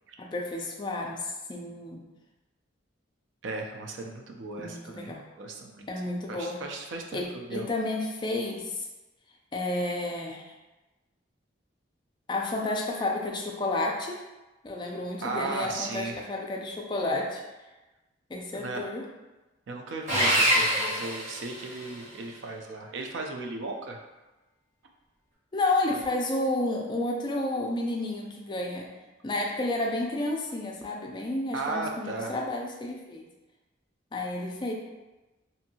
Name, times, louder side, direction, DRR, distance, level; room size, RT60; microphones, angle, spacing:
voice 1, 0.2-2.0 4.6-5.2 5.9-6.6 7.1-8.8 9.5-10.5 12.3-14.2 14.6-17.4 18.3-19.0 25.5-28.9 29.2-33.3 34.1-34.7, left 2 dB, 25° left, 0 dB, 0.3 m, -31 dB
voice 2, 3.4-5.8 6.3-7.7 15.2-16.2 18.5-18.9 19.7-24.0 31.5-32.3, right 3 dB, 70° right, 2 dB, 0.4 m, -36 dB
Sawing, 20.1-22.0, equal, 35° right, 1.0 m, -25 dB
2.7 x 2.6 x 2.7 m, 1.1 s
head